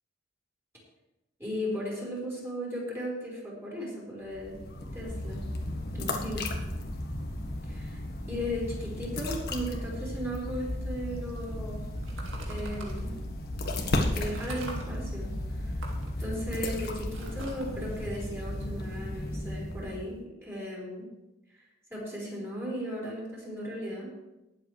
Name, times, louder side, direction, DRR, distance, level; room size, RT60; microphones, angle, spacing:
voice 1, 1.4-4.6 4.9-5.4 5.9-6.5 7.6-8.0 8.3-11.8 12.3-13.2 14.1-15.3 15.6-15.8 16.2-21.1 21.9-24.1, equal, 10° right, -5 dB, 4.7 m, -36 dB
sound 1, 4.3-20.2, left 1 dB, 55° left, 1.5 m, -34 dB
sound 2, 12.0-13.0 13.6-13.7 14.3-14.9 15.7-19.2, right 2 dB, 70° right, 2.2 m, -45 dB
19.5 x 7.9 x 3.4 m, 0.99 s
head